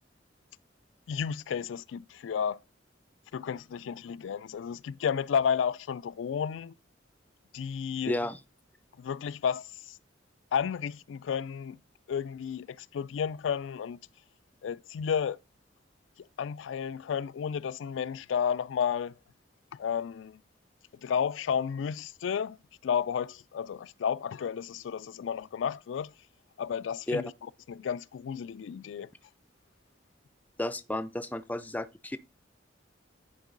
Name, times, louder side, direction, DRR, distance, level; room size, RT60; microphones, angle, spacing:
voice 1, 1.1-2.6 3.3-6.7 7.5-8.1 9.0-10.0 10.5-11.8 12.1-14.0 14.6-15.4 16.4-19.1 19.7-20.4 21.0-22.6 22.8-26.1 26.6-27.3 27.7-29.1, left 7 dB, 85° left, 0.3 m, -32 dB
voice 2, 8.1-8.4 27.1-27.2 30.6-32.2, left 1 dB, 10° left, 0.4 m, -32 dB
10.0 x 4.5 x 3.8 m
head